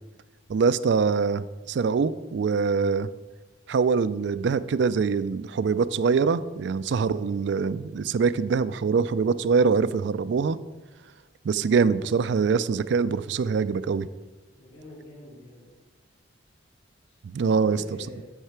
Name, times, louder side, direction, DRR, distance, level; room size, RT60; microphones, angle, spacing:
voice 1, 0.5-3.1 3.7-10.6 11.4-14.1 17.2-17.8, right 5 dB, 65° right, 15 dB, 0.3 m, -24 dB
voice 2, 14.6-15.7 17.1-17.2 17.4-18.2, left 1 dB, 65° left, -6 dB, 2.4 m, -45 dB
8.2 x 6.5 x 4.5 m, 1.2 s
head